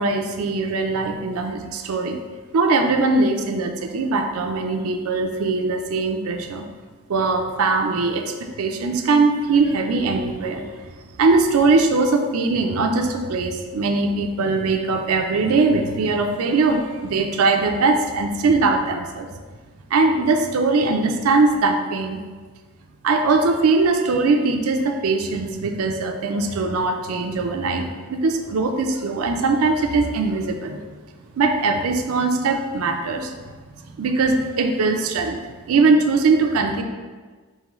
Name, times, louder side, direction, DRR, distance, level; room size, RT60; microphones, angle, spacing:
voice 1, 0.0-2.2 2.5-6.7 7.1-10.9 11.2-19.3 19.9-22.2 23.0-30.8 31.3-33.3 33.9-36.8, right 3 dB, 75° right, 5 dB, 0.4 m, -21 dB
4.0 x 3.7 x 3.0 m, 1.4 s
head